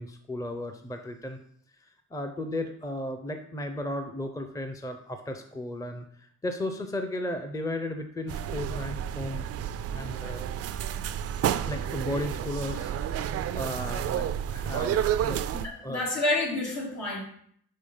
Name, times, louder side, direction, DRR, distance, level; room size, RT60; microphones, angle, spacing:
voice 1, 0.0-1.4 1.8-9.4 9.9-10.5 11.6-15.5 15.8-16.1, left 1 dB, 10° left, 6 dB, 0.6 m, -35 dB
sound 1, 8.3-15.7, right 10 dB, 55° right, 0.4 m, -30 dB
voice 2, 15.6-17.2, left 2 dB, 70° left, -3 dB, 2.8 m, -29 dB
5.2 x 4.5 x 5.5 m, 0.65 s
cardioid pair, 90°, 30 cm